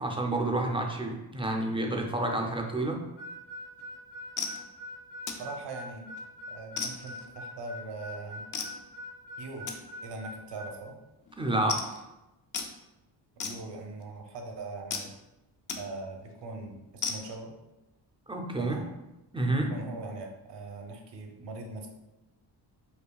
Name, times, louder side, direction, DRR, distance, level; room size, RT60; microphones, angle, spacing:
voice 1, 0.0-3.0 11.4-11.9 18.3-18.8 19.3-19.7, right 2 dB, 15° right, 1 dB, 0.3 m, -29 dB
Harmonica, 3.2-10.8, left 1 dB, 70° left, 1.3 m, -43 dB
sound 1, 3.8-4.0 4.4-4.6 5.3-5.5 6.0-6.2 6.8-7.3 8.5-8.8 9.7-9.8 10.5-10.6 10.9-11.0 11.3-11.4 11.7-12.0 12.5-12.7 13.4-14.0 14.9-15.1 15.7-15.8 16.2-16.3 17.0-17.4, left 5 dB, 45° left, 0.4 m, -35 dB
voice 2, 5.4-6.1 6.5-8.4 9.4-9.7 10.0-11.0 13.4-15.1 15.8-17.5 18.6-18.9 19.7-21.9, right 3 dB, 70° right, 3 dB, 0.7 m, -41 dB
5.4 x 2.3 x 2.3 m, 0.97 s
wide cardioid pair, 125°, 43 cm